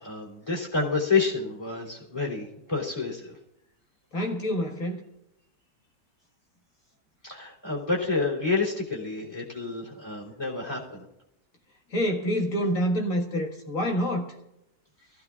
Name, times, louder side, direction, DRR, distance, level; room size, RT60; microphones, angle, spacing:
voice 1, 0.0-3.4 7.2-11.0, left 4 dB, 15° left, -4 dB, 3.3 m, -29 dB
voice 2, 4.1-5.0 11.9-14.3, equal, 45° left, 0 dB, 2.1 m, -27 dB
23.5 x 15.5 x 2.5 m, 0.84 s
omnidirectional pair, 1.9 m